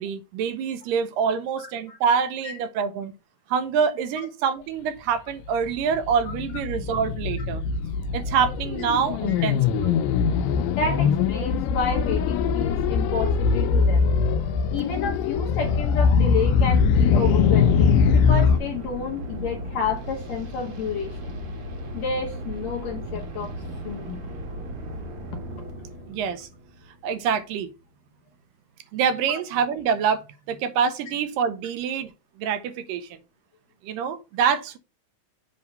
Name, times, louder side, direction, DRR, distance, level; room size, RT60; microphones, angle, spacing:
voice 1, 0.0-3.1 3.5-7.6 8.1-10.0 26.1-26.5 27.0-27.7 28.9-32.1 32.4-33.2 33.8-34.8, right 7 dB, 80° right, 2.3 m, -26 dB
voice 2, 1.6-2.0 2.4-2.5 4.2-4.3 9.3-9.5 10.7-21.4 21.9-23.5 23.8-24.2 29.3-29.4, left 5 dB, 65° left, 1.8 m, -30 dB
sound 1, 5.5-18.6, left 6 dB, 85° left, 2.4 m, -22 dB
sound 2, 16.9-27.7, equal, 55° right, 1.6 m, -36 dB
7.8 x 2.8 x 5.2 m
omnidirectional pair, 3.9 m